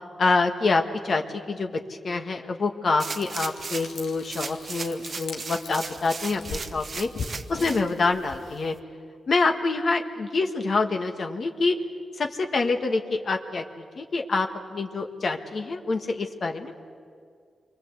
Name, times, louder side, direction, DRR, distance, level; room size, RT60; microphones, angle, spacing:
voice 1, 0.2-7.1 7.5-8.8 9.3-11.8 12.2-16.7, left 3 dB, 55° left, 4 dB, 1.6 m, -26 dB
sound 1, 3.0-4.0 4.3-7.8 8.3-8.4, right 4 dB, 50° right, 1.1 m, -36 dB
Frying (food), 3.2-8.6, left 4 dB, 90° left, 2.3 m, -40 dB
28.0 x 24.0 x 8.2 m, 2.2 s
wide cardioid pair, 100°, 0 cm